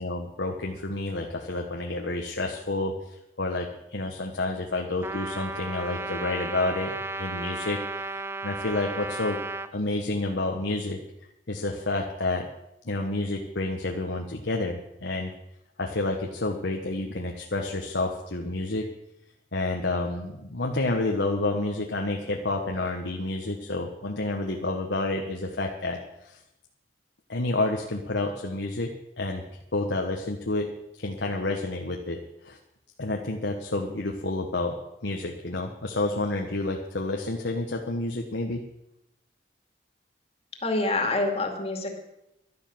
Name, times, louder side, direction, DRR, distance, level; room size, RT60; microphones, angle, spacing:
voice 1, 0.0-9.4 9.7-11.0 11.5-12.5 12.8-15.3 15.8-18.9 19.5-26.4 27.3-29.4 29.7-30.7 31.0-32.6 33.0-38.6, left 2 dB, 85° left, 1 dB, 1.4 m, -29 dB
Trumpet, 5.0-9.7, right 2 dB, 15° right, 0.6 m, -34 dB
voice 2, 40.6-42.0, left 2 dB, 35° left, 4 dB, 2.4 m, -26 dB
12.0 x 11.5 x 7.8 m, 0.87 s
head